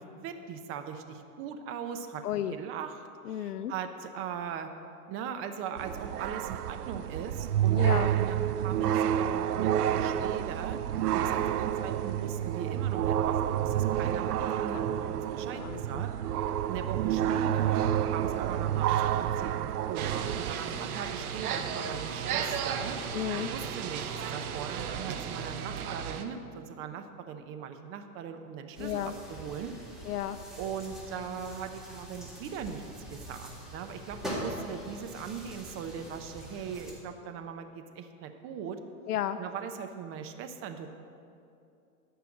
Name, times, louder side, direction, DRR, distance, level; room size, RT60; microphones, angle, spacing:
voice 1, 0.0-2.2 2.5-4.7 5.1-10.8 11.1-16.1 16.7-23.0 23.5-29.7 30.6-38.8 39.4-40.9, right 7 dB, 30° right, 7 dB, 0.7 m, -40 dB
voice 2, 2.2-2.5 3.2-3.7 7.7-8.1 14.7-14.8 15.6-16.0 23.1-23.5 28.8-29.1 30.1-30.4 39.1-39.4, left 11 dB, 85° left, 12 dB, 0.6 m, -33 dB
sound 1, 5.8-20.5, right 10 dB, 85° right, 0.6 m, -29 dB
sound 2, 19.9-26.2, right 7 dB, 70° right, 1.0 m, -35 dB
sound 3, 28.7-36.9, equal, ahead, 2.1 m, -43 dB
12.5 x 5.7 x 7.3 m, 2.6 s
hypercardioid pair, 120°, 45 cm